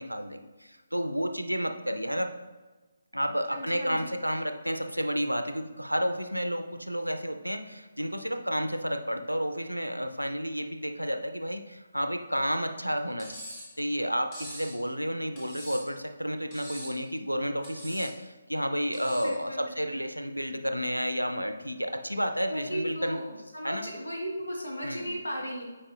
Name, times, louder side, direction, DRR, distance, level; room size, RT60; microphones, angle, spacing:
voice 1, 0.0-2.3 3.1-13.4 13.8-23.2 23.6-23.9 24.8-25.2, equal, 90° right, 6 dB, 0.6 m, -31 dB
voice 2, 3.5-4.1 19.2-19.7 22.5-25.6, equal, 75° left, -1 dB, 1.5 m, -36 dB
Cutlery silverware, 13.2-13.7 14.3-14.8 15.4-16.0 16.5-17.0 17.6-18.1 18.9-19.4, equal, 25° left, 2.0 m, -43 dB
8.7 x 4.8 x 2.4 m, 1.2 s
figure-of-eight pair, 145°, 0 cm